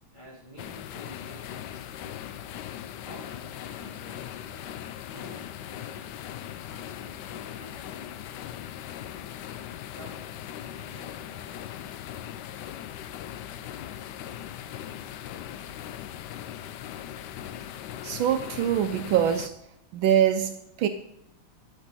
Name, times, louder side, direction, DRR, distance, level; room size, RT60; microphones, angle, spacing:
voice 1, 0.1-2.2 3.0-6.0 6.7-8.2 9.9-10.3 10.5-11.9, equal, 20° left, -7 dB, 4.0 m, -50 dB
sound 1, 0.6-19.5, left 11 dB, 80° left, 0.9 m, -39 dB
voice 2, 18.0-19.5 19.9-20.9, right 10 dB, 75° right, 8 dB, 1.3 m, -24 dB
11.5 x 8.1 x 4.1 m, 0.82 s
omnidirectional pair, 2.4 m